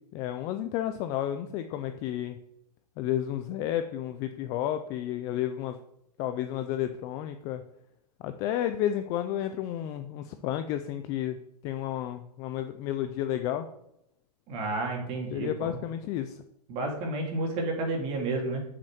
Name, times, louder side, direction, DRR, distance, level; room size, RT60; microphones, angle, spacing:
voice 1, 0.1-2.4 3.0-5.8 6.2-7.6 8.2-11.4 11.6-13.7 15.3-16.4, left 11 dB, 15° left, 9 dB, 0.3 m, -31 dB
voice 2, 14.5-15.8 16.7-18.7, right 2 dB, 30° right, 0 dB, 3.0 m, -31 dB
8.5 x 6.4 x 7.7 m, 0.82 s
hypercardioid pair, 150°, 21 cm